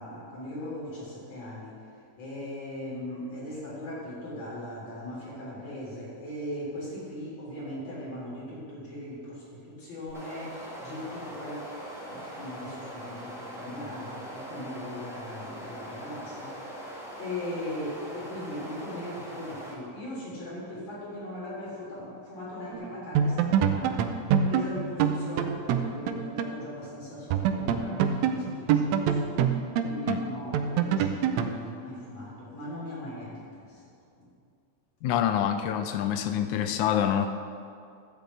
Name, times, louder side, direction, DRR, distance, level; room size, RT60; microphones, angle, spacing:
voice 1, 0.0-1.8 2.2-11.6 11.9-16.8 17.2-24.0 24.4-29.4 29.8-33.8 34.2-34.3, left 1 dB, 50° left, -6 dB, 4.4 m, -39 dB
sound 1, 10.1-19.7, equal, 5° right, 0.4 m, -41 dB
sound 2, 22.7-22.9 23.1-26.6 26.8-26.9 27.3-31.6, right 7 dB, 90° right, 1.5 m, -26 dB
voice 2, 35.0-37.3, left 9 dB, 85° left, 8 dB, 1.7 m, -26 dB
12.5 x 5.2 x 8.0 m, 2.3 s
omnidirectional pair, 3.9 m